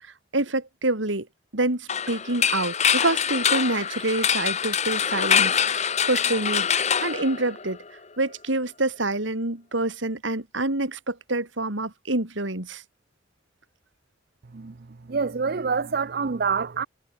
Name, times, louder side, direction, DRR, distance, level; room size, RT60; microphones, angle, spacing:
voice 1, 0.3-1.3 1.5-7.8 8.2-12.8, right 2 dB, 75° right, 3.2 m, -27 dB
sound 1, 1.9-7.9, left 7 dB, 35° left, 1.2 m, -24 dB
voice 2, 15.1-16.9, right 5 dB, 50° right, 0.6 m, -26 dB
head